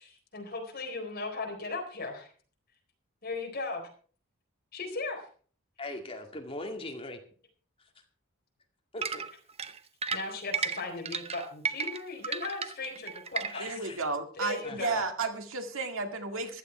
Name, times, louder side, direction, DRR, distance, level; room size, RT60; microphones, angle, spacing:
voice 1, 0.0-2.3 3.2-3.9 4.7-5.3 10.1-13.8 14.4-15.0, left 3 dB, 45° left, 2 dB, 4.1 m, -37 dB
voice 2, 5.8-7.2 8.9-9.2 13.5-14.0 14.6-14.8, left 2 dB, 25° left, 3 dB, 2.1 m, -40 dB
sound 1, 9.0-13.8, right 5 dB, 30° right, 0.7 m, -34 dB
voice 3, 13.6-16.6, right 3 dB, 70° right, 5 dB, 2.1 m, -33 dB
15.0 x 12.0 x 4.4 m, 0.43 s
head